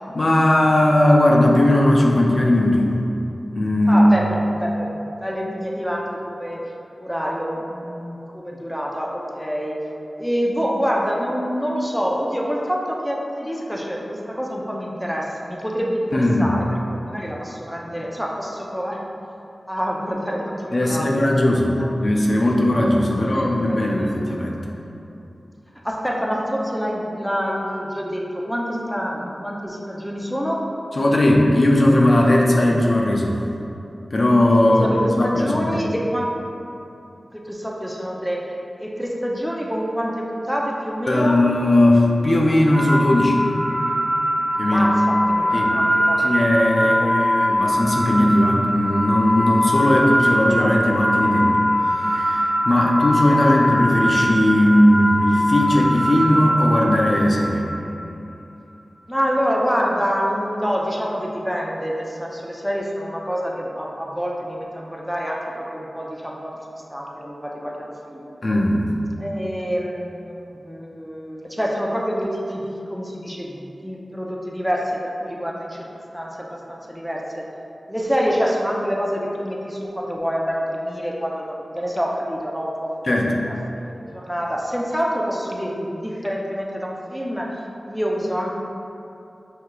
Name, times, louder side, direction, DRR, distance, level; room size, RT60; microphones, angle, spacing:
voice 1, 0.1-2.9 3.5-4.1 16.1-16.6 20.7-24.6 31.0-33.4 34.1-34.9 35.2-35.7 41.1-43.4 44.6-45.0 45.5-45.8 46.2-51.6 52.0-57.7 68.4-68.8 83.0-83.3, left 1 dB, 60° left, -2 dB, 0.5 m, -18 dB
voice 2, 3.9-6.7 7.0-9.8 10.2-16.6 16.9-19.0 19.7-21.5 21.8-21.9 23.2-24.3 25.8-30.7 34.7-36.4 37.3-41.5 44.6-46.3 46.7-47.1 52.7-52.8 53.1-53.4 59.1-68.3 69.2-75.9 76.1-77.4 77.9-82.9 83.3-87.6 87.9-88.6, equal, ahead, -2 dB, 0.6 m, -27 dB
sound 1, 42.7-57.8, equal, 40° right, 0.9 m, -22 dB
6.1 x 2.8 x 2.3 m, 2.8 s
cardioid pair, 45°, 0 cm